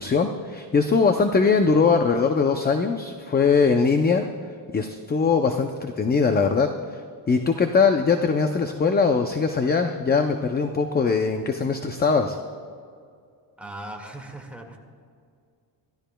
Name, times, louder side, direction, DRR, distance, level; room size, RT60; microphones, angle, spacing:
voice 1, 0.0-4.3 4.7-12.4, left 5 dB, 20° left, 6 dB, 0.5 m, -21 dB
voice 2, 13.6-14.8, right 1 dB, 5° right, 0 dB, 1.9 m, -38 dB
26.0 x 14.0 x 2.3 m, 2.2 s
cardioid pair, 145°, 45 cm